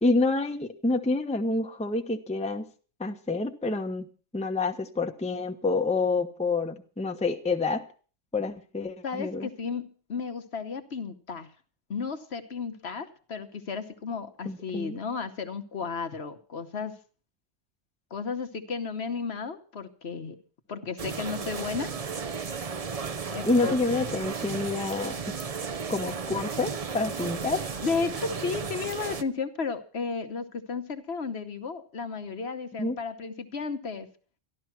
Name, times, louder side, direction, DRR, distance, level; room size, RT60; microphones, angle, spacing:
voice 1, 0.0-2.6 3.0-4.0 4.3-7.8 8.3-9.5 14.4-15.0 23.4-25.1 25.9-27.6 32.8-33.0, left 3 dB, 5° left, 5 dB, 0.8 m, -28 dB
voice 2, 9.0-11.5 11.9-16.9 18.1-20.4 20.7-21.9 23.3-23.8 27.8-34.1, left 5 dB, 60° left, 7 dB, 1.3 m, -33 dB
sound 1, 21.0-29.2, right 5 dB, 35° right, 0.6 m, -34 dB
13.0 x 12.0 x 5.9 m, 0.39 s
omnidirectional pair, 1.3 m